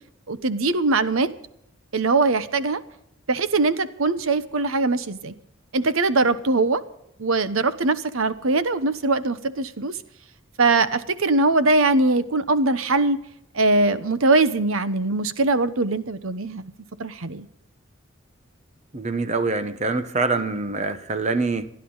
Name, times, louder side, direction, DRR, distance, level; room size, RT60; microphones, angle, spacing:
voice 1, 0.3-1.3 1.9-2.8 3.3-5.3 5.7-6.8 7.2-9.9 10.6-13.2 13.5-16.7 17.0-17.5, right 3 dB, 75° right, 13 dB, 1.0 m, -21 dB
voice 2, 18.9-21.7, right 3 dB, 30° right, 10 dB, 1.0 m, -25 dB
28.5 x 11.0 x 4.0 m, 0.78 s
head